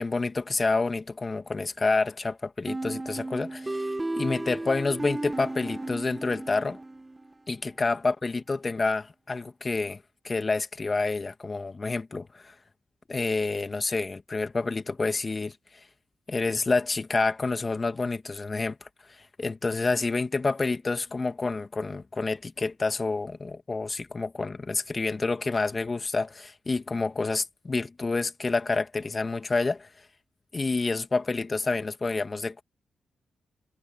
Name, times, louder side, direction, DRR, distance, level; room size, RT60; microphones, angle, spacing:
voice 1, 0.0-6.8 7.5-12.5 13.1-15.5 16.3-18.8 19.4-29.9 30.5-32.6, left 3 dB, 40° left, 2.2 m, -28 dB
sound 1, 2.7-7.3, right 2 dB, 20° right, 1.5 m, -34 dB
supercardioid pair, 55°, 0 cm